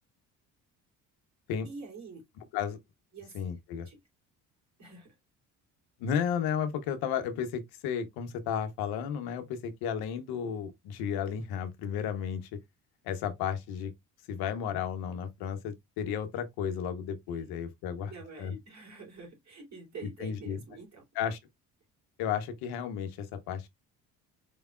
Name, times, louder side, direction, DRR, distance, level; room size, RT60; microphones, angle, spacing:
voice 1, 1.6-2.2 3.1-3.6 3.8-4.0 4.8-5.2 17.3-17.4 17.8-21.0, right 4 dB, 45° right, 3.1 m, -47 dB
voice 2, 3.3-3.9 6.0-12.5 13.0-13.9 14.3-18.1 18.4-18.5 20.2-20.6 21.2-21.4 22.2-23.7, left 8 dB, 75° left, 0.9 m, -33 dB
4.6 x 3.4 x 2.3 m
supercardioid pair, 65°, 38 cm